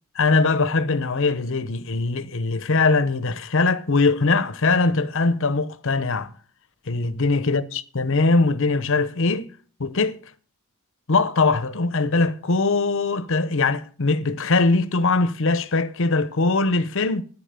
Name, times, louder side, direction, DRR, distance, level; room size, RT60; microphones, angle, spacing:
voice 1, 0.2-6.3 6.9-9.5 9.8-10.2 11.1-17.2, left 3 dB, 60° left, 0.9 m, -21 dB
10.5 x 10.0 x 6.6 m
head